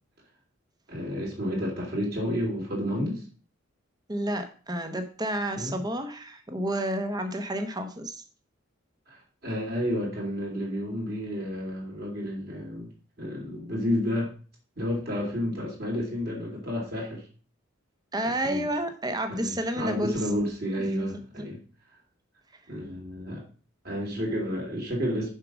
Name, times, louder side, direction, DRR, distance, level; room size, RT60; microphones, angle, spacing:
voice 1, 0.9-3.2 5.5-5.8 9.1-12.9 13.2-14.3 14.8-17.3 18.4-18.7 19.3-21.6 22.7-23.4 23.8-25.3, equal, 45° right, -3 dB, 3.0 m, -31 dB
voice 2, 4.1-8.2 18.1-20.2 20.7-21.1 21.4-21.5, right 1 dB, 20° right, 7 dB, 1.0 m, -30 dB
6.6 x 5.1 x 6.1 m, 0.39 s
head